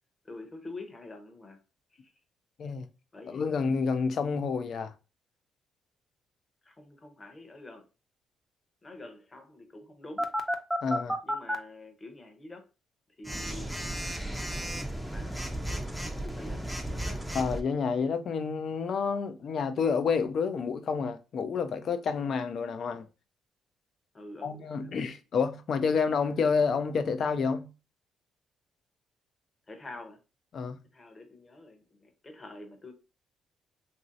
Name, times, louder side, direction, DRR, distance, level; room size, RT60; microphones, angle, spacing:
voice 1, 0.2-1.6 3.1-3.4 6.6-7.9 8.8-10.3 11.2-12.6 13.2-13.8 15.1-15.9 16.1-17.2 24.1-24.9 29.7-30.2 30.9-32.9, left 2 dB, 25° left, 0.8 m, -46 dB
voice 2, 3.3-4.9 10.8-11.2 17.3-23.1 24.4-27.7 30.5-30.8, left 5 dB, 60° left, 0.5 m, -29 dB
Telephone, 10.2-11.5 13.2-17.6, equal, ahead, 0.5 m, -33 dB
3.0 x 2.7 x 2.6 m
cardioid pair, 90°, 0 cm